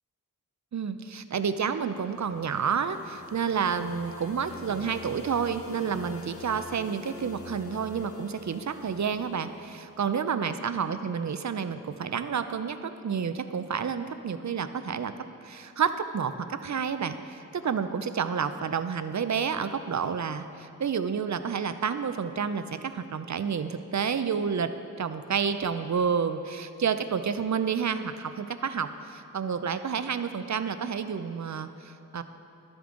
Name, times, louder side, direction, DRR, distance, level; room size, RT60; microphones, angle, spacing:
voice 1, 0.7-15.1 15.4-24.7 25.0-32.2, right 6 dB, 60° right, 11 dB, 0.5 m, -30 dB
sound 1, 1.9-10.1, left 5 dB, 45° left, 0.6 m, -47 dB
12.0 x 6.9 x 3.8 m, 2.7 s
wide cardioid pair, 45°, 32 cm